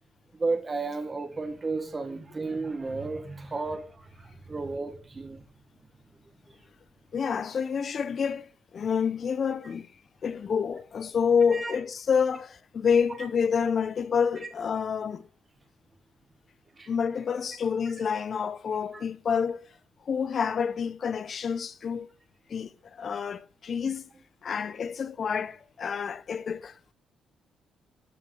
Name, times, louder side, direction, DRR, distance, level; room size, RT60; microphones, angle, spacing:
voice 1, 0.4-5.4 11.5-11.7 16.8-16.9 18.9-19.0 23.1-23.2 23.7-23.9 25.9-26.0, right 3 dB, 30° right, 1.6 m, -33 dB
voice 2, 7.1-9.9 10.2-15.3 16.9-19.6 20.1-22.1 22.5-24.1 24.4-26.7, left 6 dB, 50° left, 0.8 m, -28 dB
13.0 x 4.6 x 5.5 m
cardioid pair, 90°, 0 cm